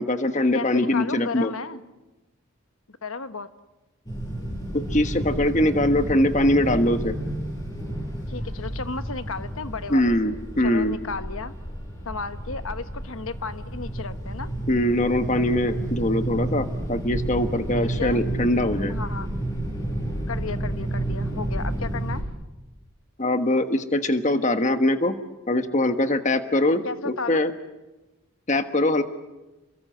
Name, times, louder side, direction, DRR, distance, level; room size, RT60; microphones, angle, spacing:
voice 1, 0.0-1.5 4.7-7.1 9.9-11.0 14.7-19.0 23.2-25.2 25.5-27.5 28.5-29.0, left 1 dB, 35° left, 8 dB, 1.4 m, -22 dB
voice 2, 0.5-1.8 2.9-3.5 8.3-10.4 10.6-11.5 12.0-14.5 17.8-18.2 18.9-19.3 20.3-22.3 26.8-27.4, left 4 dB, 75° left, 11 dB, 1.1 m, -34 dB
sound 1, 4.1-22.2, right 1 dB, 20° left, 7.2 m, -31 dB
28.5 x 22.5 x 7.8 m, 1.1 s
head